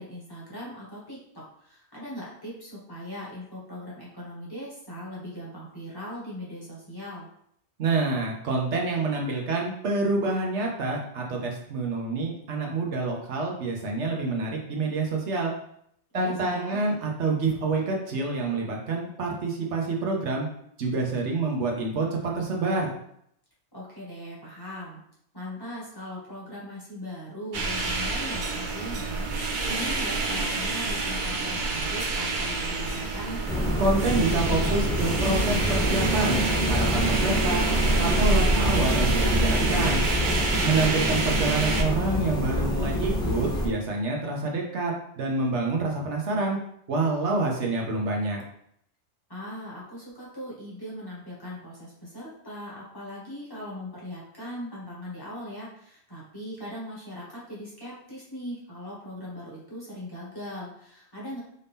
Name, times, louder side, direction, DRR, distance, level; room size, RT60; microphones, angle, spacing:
voice 1, 0.0-7.3 16.1-16.8 23.7-25.0 25.3-33.4 40.5-40.9 49.3-61.4, equal, 20° left, -7 dB, 1.6 m, -39 dB
voice 2, 7.8-15.5 16.1-20.5 20.8-23.0 33.8-37.6 38.0-40.0 40.6-46.6 46.9-48.4, right 3 dB, 75° right, 0 dB, 1.1 m, -27 dB
sound 1, 27.5-41.8, right 3 dB, 50° right, 0.7 m, -28 dB
sound 2, 33.5-43.7, equal, 5° left, 0.7 m, -26 dB
5.2 x 2.7 x 3.5 m, 0.71 s
omnidirectional pair, 1.2 m